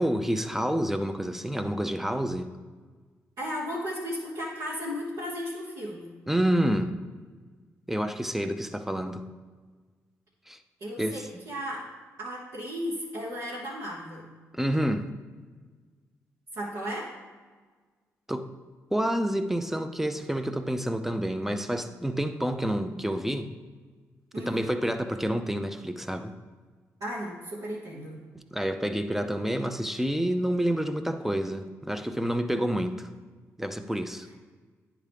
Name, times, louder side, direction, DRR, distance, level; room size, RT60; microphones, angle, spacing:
voice 1, 0.0-2.5 6.3-7.0 7.9-9.2 10.5-10.6 11.0-11.2 14.5-15.1 18.3-18.5 18.9-23.5 24.4-26.3 28.3-33.1 33.6-34.3, equal, 5° right, 9 dB, 0.6 m, -28 dB
voice 2, 3.4-6.1 10.8-11.9 12.2-14.3 16.5-17.1 24.3-24.7 27.0-28.3, equal, 65° right, -7 dB, 1.2 m, -35 dB
9.8 x 3.7 x 3.4 m, 1.4 s
hypercardioid pair, 45°, 7 cm